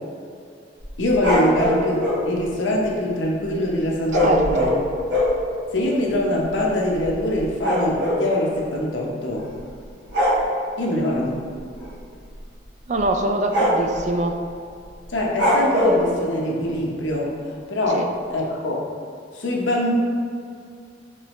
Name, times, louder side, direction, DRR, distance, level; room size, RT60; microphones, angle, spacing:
sound 1, 0.8-2.2 4.1-5.4 6.1-6.2 6.4-6.6 6.9-8.3 9.4-9.7 10.1-10.4 11.8-12.0 12.4-12.5 13.0-13.1 13.5-14.0 15.4-16.0, left 1 dB, 65° right, 1.3 m, -21 dB
voice 1, 1.0-4.7 5.7-9.5 10.8-11.4 15.1-18.0 18.3-18.8 19.3-19.9, left 1 dB, 80° left, -2 dB, 0.8 m, -23 dB
voice 2, 4.2-4.7 12.9-14.4 17.9-18.1, right 2 dB, 40° right, 4 dB, 0.3 m, -23 dB
4.6 x 3.2 x 3.1 m, 2.3 s
head